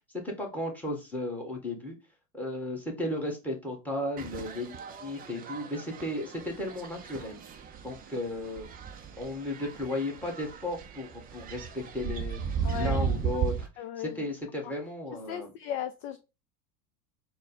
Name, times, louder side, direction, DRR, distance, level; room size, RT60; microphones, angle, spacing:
voice 1, 0.2-2.0 2.3-7.4 7.8-8.7 9.2-13.7 14.0-15.5, left 1 dB, 5° left, 2 dB, 1.5 m, -35 dB
sound 1, 4.2-13.7, right 6 dB, 20° right, 0.5 m, -36 dB
voice 2, 12.6-13.0 13.8-14.3 15.3-16.2, left 9 dB, 40° left, 9 dB, 0.4 m, -36 dB
4.1 x 2.3 x 4.0 m, 0.28 s
hypercardioid pair, 95°, 47 cm